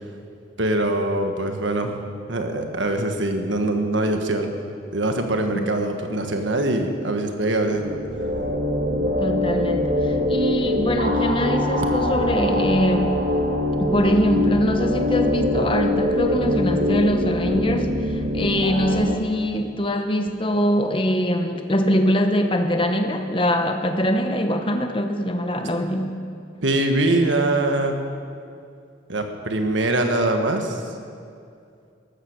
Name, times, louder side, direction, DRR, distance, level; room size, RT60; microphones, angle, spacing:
voice 1, 0.6-2.0 2.3-4.5 4.9-8.0 26.6-28.0 29.1-30.8, right 2 dB, 75° right, 5 dB, 1.4 m, -23 dB
sound 1, 7.6-19.1, left 1 dB, 50° right, 1.7 m, -23 dB
voice 2, 9.2-13.1 13.8-26.1, equal, 25° left, 6 dB, 0.9 m, -23 dB
13.5 x 11.5 x 6.6 m, 2.4 s
head